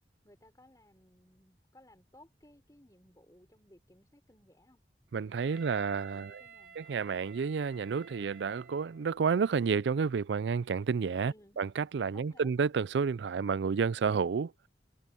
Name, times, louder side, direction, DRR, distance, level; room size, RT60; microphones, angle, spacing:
voice 1, 0.2-4.8 5.5-6.8 11.2-11.6 12.1-12.5, left 1 dB, 20° left, 4.8 m, -60 dB
voice 2, 5.1-6.4 6.8-14.5, right 5 dB, 90° right, 0.4 m, -30 dB
Wind instrument woodwind instrument, 5.4-9.2, right 6 dB, 70° right, 5.0 m, -53 dB
head